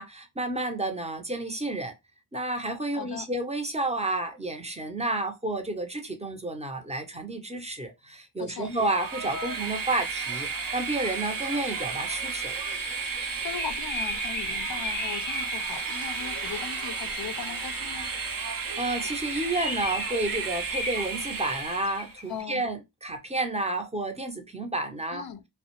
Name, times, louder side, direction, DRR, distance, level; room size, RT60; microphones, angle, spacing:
voice 1, 0.0-1.9 2.3-12.6 18.8-25.5, right 2 dB, 15° right, 0.6 m, -31 dB
voice 2, 2.9-3.3 8.4-8.7 13.4-18.1 22.3-22.6 25.1-25.4, left 8 dB, 60° left, 0.5 m, -38 dB
Train, 8.6-22.1, right 5 dB, 55° right, 0.7 m, -33 dB
Bird, 13.1-17.2 18.8-22.3, left 2 dB, 25° left, 0.7 m, -37 dB
2.3 x 2.1 x 2.9 m
wide cardioid pair, 70°, 41 cm